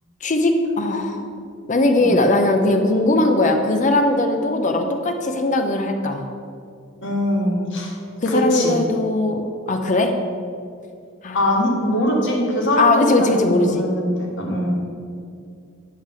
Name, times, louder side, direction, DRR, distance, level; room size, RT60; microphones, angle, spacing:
voice 1, 0.2-1.2 1.7-6.2 8.2-9.4 9.7-10.1 11.2-11.4 12.8-13.8, left 2 dB, 35° left, 5 dB, 0.6 m, -19 dB
voice 2, 7.0-7.9 8.3-8.7 11.3-14.7, equal, 60° left, -2 dB, 1.5 m, -22 dB
9.2 x 3.2 x 6.8 m, 2.3 s
head